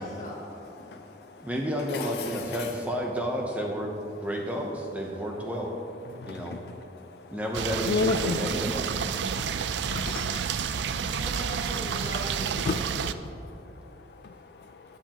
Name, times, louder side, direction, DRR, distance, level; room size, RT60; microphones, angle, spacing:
voice 1, 0.0-0.7 1.4-1.5 11.0-12.9, left 1 dB, 45° left, -4 dB, 2.3 m, -39 dB
voice 2, 0.8-1.5 1.9-2.7 6.1-7.4 7.8-8.5 9.0-11.1 12.7-15.0, left 4 dB, 65° left, 6 dB, 0.4 m, -35 dB
voice 3, 1.4-3.9 4.2-5.7 6.3-6.6 7.3-8.9, equal, 10° right, 0 dB, 0.8 m, -31 dB
sound 1, 7.5-13.1, right 7 dB, 80° right, 0.4 m, -30 dB
15.0 x 9.1 x 2.9 m, 2.7 s
head